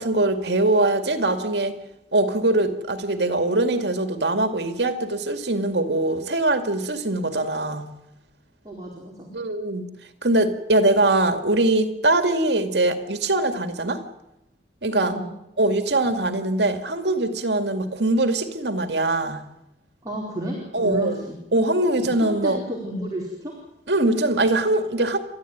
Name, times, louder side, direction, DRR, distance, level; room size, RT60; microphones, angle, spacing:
voice 1, 0.0-1.8 2.1-7.9 9.3-9.9 10.2-14.0 14.8-15.1 15.6-19.4 20.7-21.2 21.5-22.6 23.9-25.2, right 2 dB, 80° right, 8 dB, 2.2 m, -22 dB
voice 2, 8.6-9.3 15.0-15.3 20.0-21.4 22.0-23.5, equal, 20° right, -2 dB, 4.4 m, -32 dB
29.5 x 13.5 x 9.4 m, 0.87 s
head